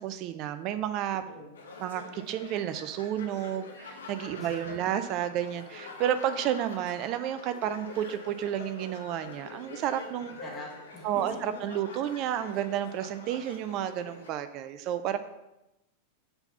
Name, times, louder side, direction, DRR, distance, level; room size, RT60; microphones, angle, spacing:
voice 1, 0.0-1.2 1.8-10.4 11.0-15.2, right 11 dB, 40° right, 11 dB, 0.4 m, -31 dB
voice 2, 1.2-1.5 4.3-4.5 10.4-11.1, left 1 dB, 20° left, -5 dB, 1.9 m, -44 dB
sound 1, 1.5-14.3, left 3 dB, 65° left, 1.0 m, -45 dB
5.6 x 4.0 x 5.6 m, 0.94 s
figure-of-eight pair, 90°, 0 cm